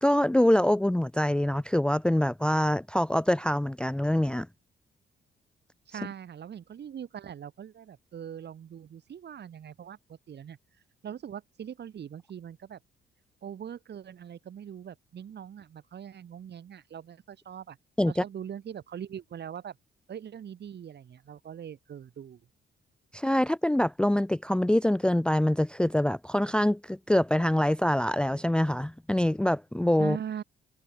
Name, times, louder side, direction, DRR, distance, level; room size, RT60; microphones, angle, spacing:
voice 1, 0.0-4.5 18.0-18.2 23.1-30.2, left 1 dB, 5° left, 0.5 m, -25 dB
voice 2, 5.9-10.6 11.0-12.8 13.4-17.8 18.1-19.8 20.1-22.4 30.0-30.4, right 9 dB, 60° right, 5.6 m, -41 dB
cardioid pair, 90°, 20 cm